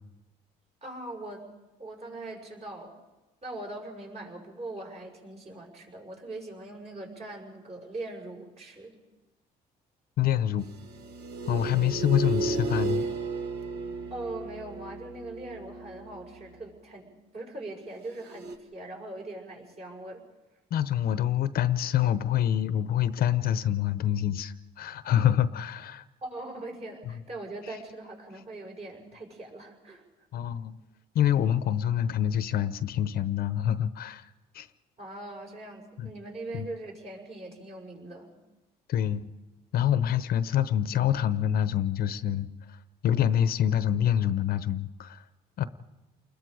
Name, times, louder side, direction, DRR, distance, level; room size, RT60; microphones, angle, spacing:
voice 1, 0.8-1.4 1.8-2.9 3.4-9.0 14.1-20.2 26.2-30.0 35.0-38.3, right 2 dB, 40° right, 0 dB, 6.0 m, -41 dB
voice 2, 10.2-10.7 11.5-13.1 20.7-26.0 27.1-27.2 30.3-30.7 31.1-34.3 34.5-34.7 36.0-36.1 36.5-36.7 38.9-39.2 39.7-42.8 43.0-45.2 45.6-45.7, left 10 dB, 65° left, 13 dB, 0.8 m, -26 dB
sound 1, 10.6-16.6 18.2-18.6, right 3 dB, 70° right, 1.8 m, -34 dB
29.0 x 21.0 x 5.0 m, 1.1 s
cardioid pair, 110°, 17 cm